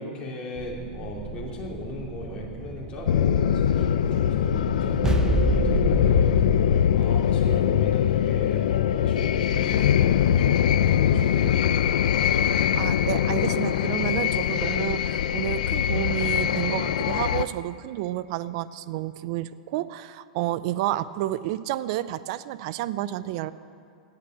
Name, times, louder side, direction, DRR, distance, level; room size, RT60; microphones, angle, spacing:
voice 1, 0.0-6.6 6.9-11.7, left 1 dB, 25° left, -3 dB, 2.7 m, -37 dB
sound 1, 0.6-7.0, right 2 dB, 15° right, 0.9 m, -30 dB
sound 2, 3.1-17.4, left 9 dB, 80° left, 0.5 m, -22 dB
voice 2, 12.8-23.5, right 14 dB, 55° right, 15 dB, 0.6 m, -30 dB
16.5 x 8.9 x 7.9 m, 2.4 s
hypercardioid pair, 130°, 4 cm